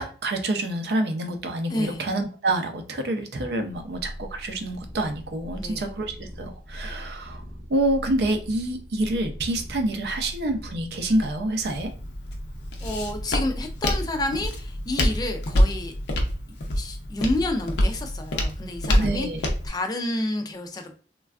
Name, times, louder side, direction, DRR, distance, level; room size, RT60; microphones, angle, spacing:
voice 1, 0.0-7.4 7.7-11.9 19.0-19.4, right 1 dB, 70° right, 6 dB, 0.5 m, -27 dB
voice 2, 1.7-2.1 5.5-5.8 12.8-15.9 16.7-19.3 19.6-20.9, left 1 dB, 20° left, 5 dB, 0.3 m, -29 dB
sound 1, 3.7-14.0, equal, 5° left, 0.7 m, -41 dB
Walk footsteps, 11.6-19.7, equal, 80° left, 0.6 m, -26 dB
3.3 x 2.3 x 2.3 m, 0.40 s
head